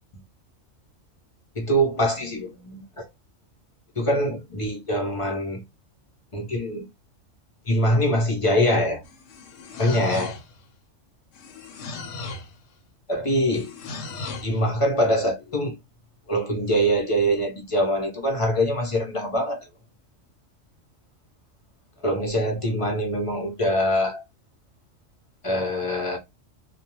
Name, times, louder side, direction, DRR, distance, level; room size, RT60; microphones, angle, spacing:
voice 1, 1.6-3.1 4.0-5.6 6.3-6.9 7.7-9.0 9.8-10.4 13.1-13.7 14.4-15.8 16.3-19.7 22.0-24.2 25.4-26.2, equal, 40° left, 0.5 m, -23 dB
sound 1, 9.0-10.6 11.3-12.6 13.5-14.6, left 3 dB, 75° left, 0.9 m, -37 dB
2.3 x 2.1 x 2.9 m
omnidirectional pair, 1.3 m